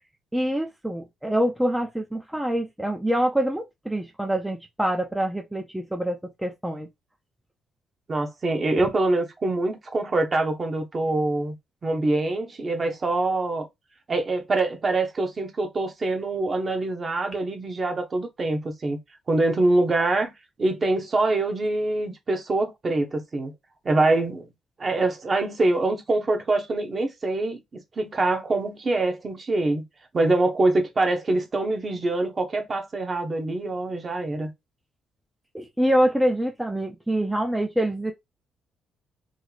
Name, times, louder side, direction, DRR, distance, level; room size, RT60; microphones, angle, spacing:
voice 1, 0.3-6.9 35.5-38.1, right 1 dB, 5° right, 0.5 m, -25 dB
voice 2, 8.1-11.5 11.8-13.7 14.1-19.0 19.3-20.3 20.6-23.5 23.8-24.5 24.8-29.8 30.1-34.5, right 2 dB, 35° right, 0.9 m, -24 dB
3.1 x 2.0 x 3.9 m
cardioid pair, 90°, 0 cm